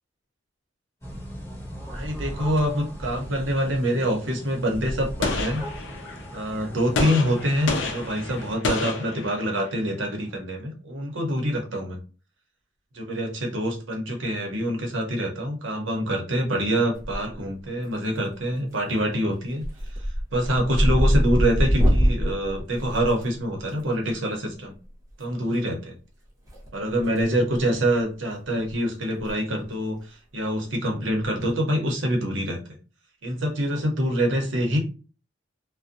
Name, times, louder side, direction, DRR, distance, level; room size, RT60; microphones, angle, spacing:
sound 1, 1.0-8.6, equal, 15° left, 1.2 m, -37 dB
voice 1, 1.9-5.6 6.3-12.0 12.9-19.6 20.3-24.7 25.2-25.9 26.7-32.6 33.2-34.8, equal, 75° right, 2 dB, 0.7 m, -25 dB
Gunshot gunfire, 5.2-6.3 6.9-9.7, left 3 dB, 65° left, 0.5 m, -29 dB
sound 2, 16.9-17.5 17.8-18.3 18.7-19.0 19.3-23.7 25.1-25.2 26.5-27.3 27.5-27.8 28.3-28.4 28.6-28.7 29.1-29.3 29.6-29.7 31.2-31.5, equal, 15° right, 0.9 m, -24 dB
2.5 x 2.1 x 2.6 m, 0.35 s
head